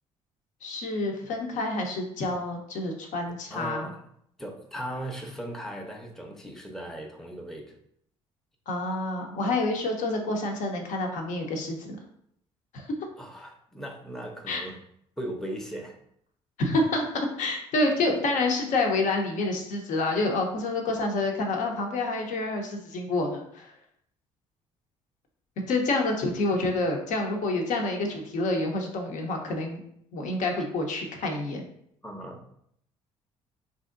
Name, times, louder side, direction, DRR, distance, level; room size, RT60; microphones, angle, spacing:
voice 1, 0.6-3.9 8.7-12.0 12.7-12.9 14.5-14.6 16.6-17.0 17.4-23.7 25.7-29.8 30.1-31.6, left 2 dB, 60° left, 2 dB, 0.7 m, -28 dB
voice 2, 3.5-4.0 4.4-7.8 13.2-14.8 15.2-16.0 32.0-32.4, right 1 dB, 5° left, 1 dB, 0.6 m, -37 dB
3.5 x 2.6 x 2.5 m, 0.70 s
hypercardioid pair, 55°, 15 cm